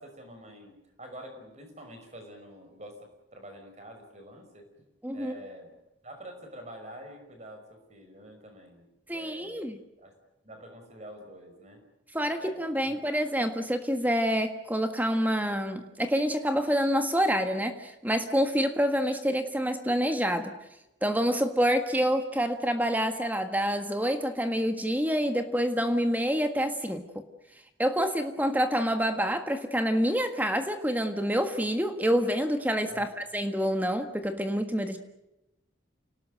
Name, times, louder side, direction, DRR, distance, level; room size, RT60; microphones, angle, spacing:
voice 1, 0.0-4.7 5.1-5.7 6.0-10.1 10.4-11.8 12.3-13.1 32.9-33.1, equal, 35° right, 5 dB, 5.8 m, -47 dB
voice 2, 5.0-5.3 9.1-9.8 12.1-20.5 21.0-27.0 27.8-35.0, equal, 10° right, 7 dB, 1.6 m, -27 dB
28.5 x 19.0 x 7.9 m, 0.90 s
head